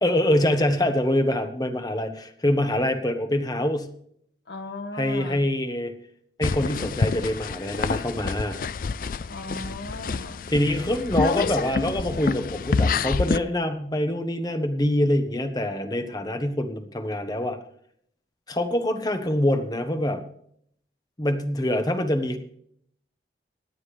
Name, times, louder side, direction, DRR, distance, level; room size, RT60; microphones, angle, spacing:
voice 1, 0.0-3.9 4.9-5.9 6.4-8.6 10.5-17.6 18.5-20.2 21.2-22.4, left 1 dB, 20° left, 7 dB, 1.2 m, -25 dB
voice 2, 4.5-5.4 9.3-10.5, left 2 dB, 70° left, 8 dB, 1.5 m, -36 dB
sound 1, 6.4-13.4, left 4 dB, 50° left, 0.4 m, -27 dB
25.5 x 9.7 x 3.3 m, 0.67 s
head